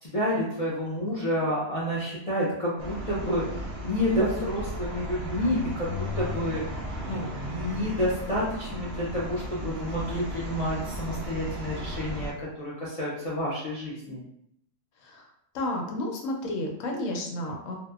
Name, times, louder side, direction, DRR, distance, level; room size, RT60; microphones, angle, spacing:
voice 1, 0.0-6.6 7.0-14.2, equal, 50° left, -8 dB, 0.4 m, -29 dB
sound 1, 2.8-12.3, equal, 65° right, 0.7 m, -35 dB
voice 2, 15.5-17.8, left 1 dB, 85° left, 0 dB, 1.0 m, -31 dB
2.7 x 2.0 x 2.3 m, 0.75 s
omnidirectional pair, 1.3 m